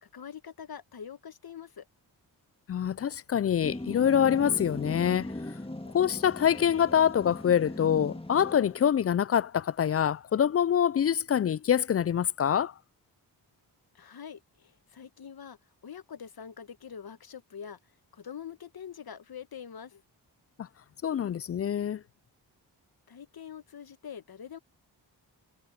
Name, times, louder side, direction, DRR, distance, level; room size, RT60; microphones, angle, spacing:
voice 1, 0.0-1.9 13.9-15.6 15.8-17.8 18.1-20.0 23.1-24.6, left 8 dB, 55° left, 1.3 m, -44 dB
voice 2, 2.7-5.3 5.9-12.7 20.6-20.7 21.0-22.0, left 9 dB, 35° left, 0.4 m, -25 dB
sound 1, 3.6-8.9, left 1 dB, 10° left, 2.5 m, -39 dB
supercardioid pair, 45°, 45 cm